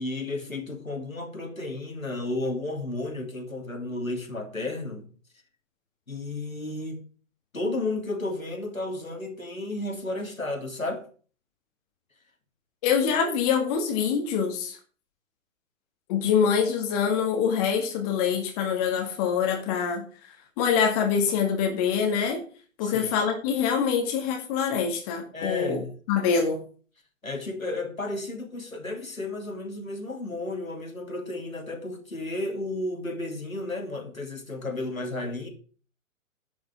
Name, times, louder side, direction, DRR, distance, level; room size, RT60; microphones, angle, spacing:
voice 1, 0.0-5.1 6.1-7.0 7.5-11.0 22.8-23.1 25.3-25.9 27.2-35.5, left 2 dB, 85° left, 2.9 m, -33 dB
voice 2, 12.8-14.8 16.1-20.1 20.6-22.4 22.8-25.8 26.1-26.6, left 7 dB, 30° left, 2.1 m, -25 dB
11.0 x 6.4 x 6.1 m
figure-of-eight pair, 120°, 40 cm